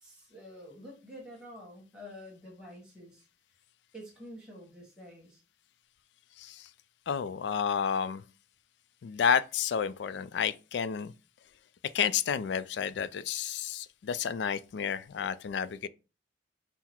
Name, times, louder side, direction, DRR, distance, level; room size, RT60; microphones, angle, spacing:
voice 1, 0.0-3.3 3.9-5.4, equal, 5° right, 1.4 m, -48 dB
voice 2, 6.4-6.7 7.1-8.2 9.0-11.1 11.9-15.9, left 7 dB, 70° left, 0.3 m, -30 dB
5.7 x 2.0 x 4.3 m
head